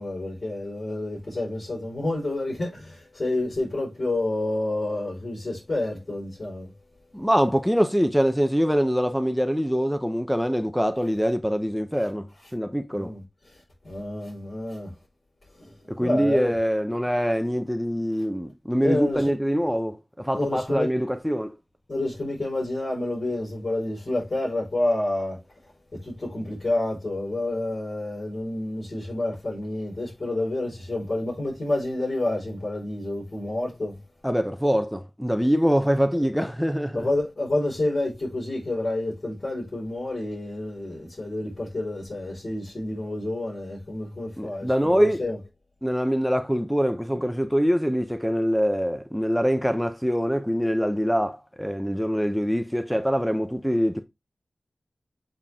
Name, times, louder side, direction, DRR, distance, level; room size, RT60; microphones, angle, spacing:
voice 1, 0.0-6.7 12.9-14.9 15.6-16.5 18.8-19.2 20.3-20.9 21.9-25.4 25.9-34.0 36.9-45.4, left 2 dB, 55° left, 4.9 m, -29 dB
voice 2, 7.1-13.1 15.9-21.5 34.2-37.1 44.4-45.2 45.8-54.0, equal, ahead, 0.8 m, -24 dB
7.4 x 4.5 x 3.6 m
wide cardioid pair, 70°, 0 cm